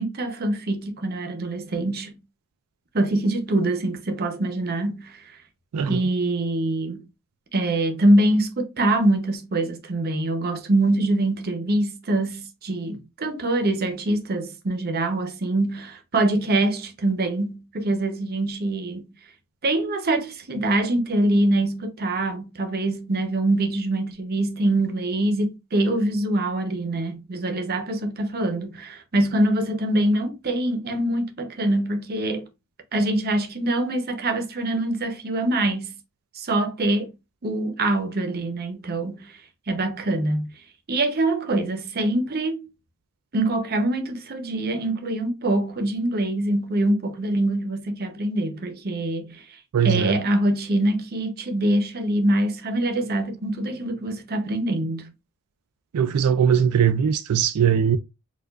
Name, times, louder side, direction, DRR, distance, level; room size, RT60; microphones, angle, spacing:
voice 1, 0.0-2.2 2.9-5.1 5.9-7.0 7.5-19.1 19.6-32.4 32.9-35.9 36.3-37.1 37.4-39.3 39.7-40.5 40.9-42.7 43.3-49.4 49.8-55.1, right 1 dB, 45° right, 0.7 m, -24 dB
voice 2, 49.7-50.2 55.9-58.0, right 8 dB, 90° right, 0.3 m, -20 dB
4.4 x 2.4 x 2.3 m
head